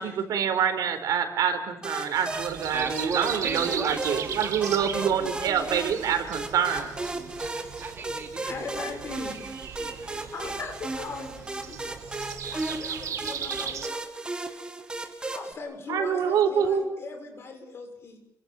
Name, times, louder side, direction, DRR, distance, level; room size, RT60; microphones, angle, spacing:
voice 1, 0.0-6.9 15.9-16.8, right 7 dB, 85° right, 7 dB, 4.6 m, -26 dB
sound 1, 1.8-15.5, right 2 dB, 15° right, 2.1 m, -36 dB
voice 2, 2.1-2.5 7.5-7.6 8.4-9.4 10.3-11.8 12.5-14.0 15.2-18.2, left 4 dB, 45° left, 5 dB, 6.7 m, -39 dB
Breathing, 2.3-13.9, right 8 dB, 55° right, 2.0 m, -38 dB
voice 3, 2.7-5.7 6.7-8.6 9.4-10.3, right 4 dB, 35° right, 5 dB, 3.4 m, -37 dB
29.5 x 24.5 x 7.4 m, 0.81 s
wide cardioid pair, 175°, 6 cm